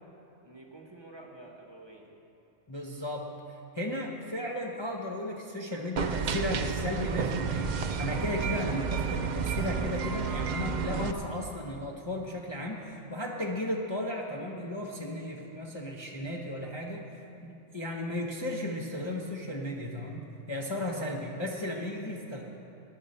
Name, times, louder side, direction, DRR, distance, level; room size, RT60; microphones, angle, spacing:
voice 1, 0.4-2.1 20.7-21.2, right 2 dB, 20° right, -1 dB, 1.2 m, -49 dB
voice 2, 2.7-17.0 17.4-22.4, left 1 dB, 25° left, -2 dB, 0.8 m, -35 dB
sound 1, 6.0-11.1, right 6 dB, 60° right, 0.4 m, -31 dB
18.5 x 10.5 x 4.3 m, 2.9 s
omnidirectional pair, 1.4 m